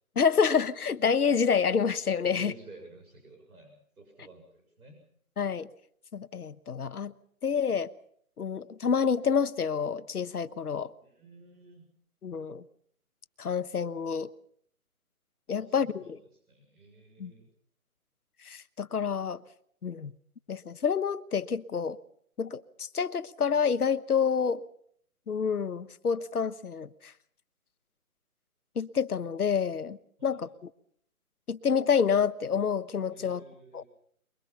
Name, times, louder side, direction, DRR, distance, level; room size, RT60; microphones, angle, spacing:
voice 1, 0.1-2.5 5.4-5.7 6.1-7.1 7.4-7.9 8.4-10.9 12.2-12.6 13.4-14.3 15.5-16.2 17.2-17.3 18.4-19.4 19.8-20.1 20.5-22.0 22.4-24.6 25.3-27.1 28.7-30.7 31.5-33.4 33.7-33.8, left 6 dB, 85° left, 1.2 m, -28 dB
voice 2, 2.2-5.0 11.0-11.9 15.5-16.2 16.5-17.5 30.2-30.5 33.1-33.9, right 2 dB, 80° right, 7.1 m, -51 dB
23.0 x 23.0 x 5.6 m
hypercardioid pair, 175°, 44 cm